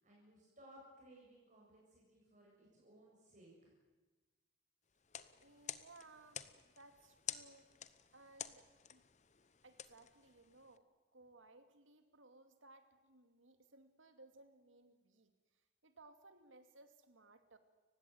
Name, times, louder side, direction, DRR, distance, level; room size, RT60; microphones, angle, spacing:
voice 1, 0.0-3.7, right 1 dB, 40° right, -3 dB, 7.3 m, -62 dB
sound 1, 5.0-10.8, left 9 dB, 35° left, 1.0 m, -51 dB
voice 2, 5.4-7.7 8.1-9.0 9.6-15.3 15.8-17.6, right 2 dB, 80° right, 8 dB, 2.5 m, -62 dB
30.0 x 16.0 x 9.4 m, 1.2 s
head